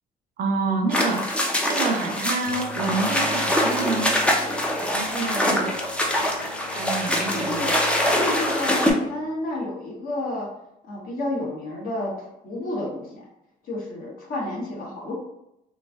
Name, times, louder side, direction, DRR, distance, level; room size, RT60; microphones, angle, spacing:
voice 1, 0.4-1.4 1.7-4.1 4.9-5.7 6.8-7.7, right 4 dB, 55° right, 3 dB, 0.5 m, -28 dB
sound 1, 0.9-8.9, left 1 dB, 5° left, 0.5 m, -24 dB
Bowed string instrument, 2.4-9.2, left 2 dB, 75° left, 0.5 m, -39 dB
voice 2, 7.3-7.7 8.1-10.5 10.9-13.3 13.6-15.1, left 1 dB, 55° left, -2 dB, 1.1 m, -31 dB
3.1 x 2.5 x 2.2 m, 0.82 s
cardioid pair, 110°, 17 cm